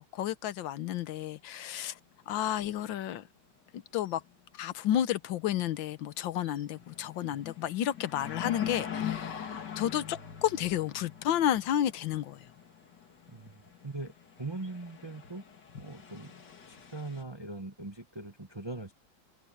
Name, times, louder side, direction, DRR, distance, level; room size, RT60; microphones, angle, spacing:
voice 1, 0.0-2.0 2.3-3.2 3.7-4.2 4.5-12.4, left 11 dB, 90° left, 1.6 m, -31 dB
sound 1, 1.3-1.4 1.7-1.8 3.9-4.3 4.6-4.7 5.3-5.6 6.0-6.1 6.4-17.2, left 9 dB, 65° left, 2.8 m, -42 dB
voice 2, 13.3-14.1 14.4-15.4 15.7-16.4 16.7-18.9, right 2 dB, 20° right, 0.7 m, -41 dB
omnidirectional pair, 2.0 m